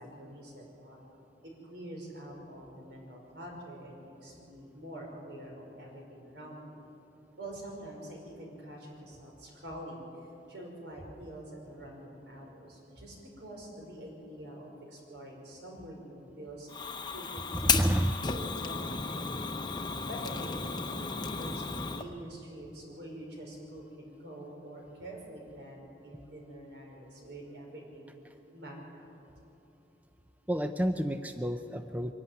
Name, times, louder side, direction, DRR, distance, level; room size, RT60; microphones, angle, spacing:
voice 1, 0.0-6.8 7.4-16.7 17.1-17.9 18.3-19.8 20.1-28.1 28.5-29.1, right 1 dB, 75° right, -1 dB, 5.4 m, -46 dB
Fire, 16.7-22.0, left 5 dB, 25° left, 0.8 m, -33 dB
voice 2, 17.5-18.1 30.5-32.1, equal, 10° right, 8 dB, 0.5 m, -29 dB
23.5 x 11.5 x 9.4 m, 2.9 s
head